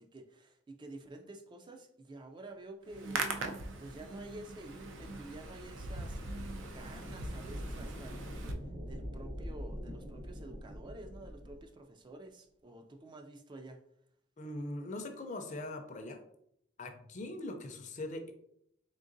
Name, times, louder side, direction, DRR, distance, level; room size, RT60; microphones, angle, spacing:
voice 1, 0.0-3.4 3.8-6.2 6.6-8.5 8.9-13.8, right 2 dB, 25° right, 4 dB, 0.3 m, -50 dB
Hands, 2.9-8.5, right 3 dB, 85° right, 0.5 m, -41 dB
sound 1, 3.7-11.7, equal, 45° right, 0.8 m, -45 dB
voice 2, 14.4-16.2 16.8-18.3, left 2 dB, 40° left, 6 dB, 0.5 m, -41 dB
3.7 x 3.6 x 2.5 m, 0.72 s
head